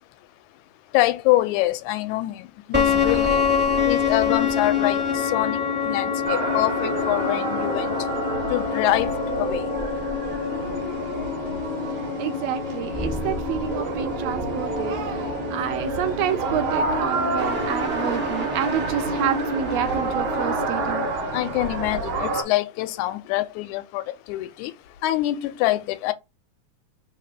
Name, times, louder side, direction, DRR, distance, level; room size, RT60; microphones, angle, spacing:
voice 1, 0.9-3.4 3.9-5.6 5.9-7.9 8.5-9.6 21.3-24.7 25.0-26.1, left 16 dB, 85° left, 1.9 m, -25 dB
sound 1, 2.7-21.1, left 6 dB, 10° right, 0.4 m, -27 dB
sound 2, 6.3-22.4, right 3 dB, 60° right, 1.4 m, -29 dB
voice 2, 12.2-21.1, right 10 dB, 80° right, 1.5 m, -29 dB
4.4 x 2.8 x 4.1 m
omnidirectional pair, 3.3 m